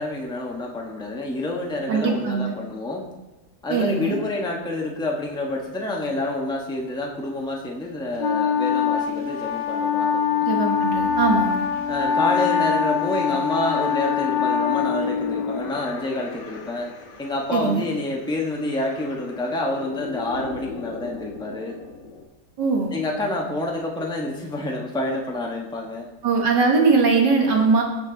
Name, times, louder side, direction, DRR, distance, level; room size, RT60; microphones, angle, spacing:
voice 1, 0.0-3.1 3.6-10.5 11.9-16.9 17.2-21.7 22.9-26.1, left 2 dB, 5° left, 0 dB, 1.2 m, -28 dB
voice 2, 1.9-2.5 3.7-4.2 10.5-11.7 17.5-17.8 22.6-22.9 26.2-27.8, right 4 dB, 85° right, 0 dB, 2.3 m, -20 dB
Wind instrument woodwind instrument, 8.2-15.7, left 7 dB, 45° left, 0.6 m, -23 dB
sound 1, 10.5-22.2, left 4 dB, 85° left, 1.9 m, -40 dB
17.0 x 5.8 x 4.1 m, 1.1 s
omnidirectional pair, 1.8 m